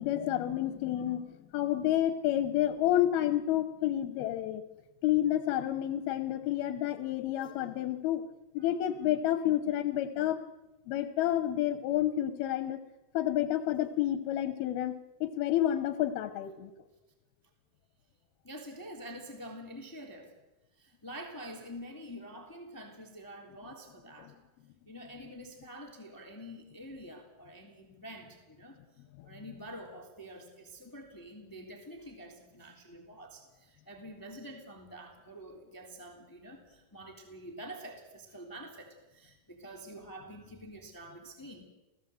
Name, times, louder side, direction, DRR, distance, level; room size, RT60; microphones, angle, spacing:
voice 1, 0.0-4.6 5.0-8.2 8.5-10.4 10.9-12.8 13.1-16.7 24.2-24.3, left 12 dB, 85° left, 10 dB, 3.0 m, -30 dB
voice 2, 18.4-20.3 20.7-24.3 24.9-28.8 29.2-41.7, equal, 5° left, 2 dB, 2.5 m, -47 dB
28.5 x 17.5 x 7.8 m, 1.0 s
omnidirectional pair, 4.3 m